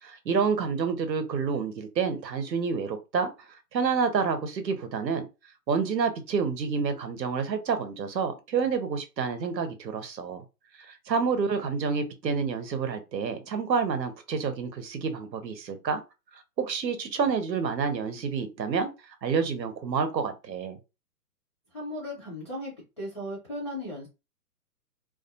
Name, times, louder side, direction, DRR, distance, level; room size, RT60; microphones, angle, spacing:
voice 1, 0.0-3.3 3.7-5.2 5.7-10.4 10.8-16.0 16.6-18.9 19.2-20.8, right 5 dB, 90° right, 0.8 m, -28 dB
voice 2, 21.7-24.1, left 1 dB, 20° left, 0.4 m, -36 dB
2.3 x 2.2 x 2.7 m
hypercardioid pair, 140°, 49 cm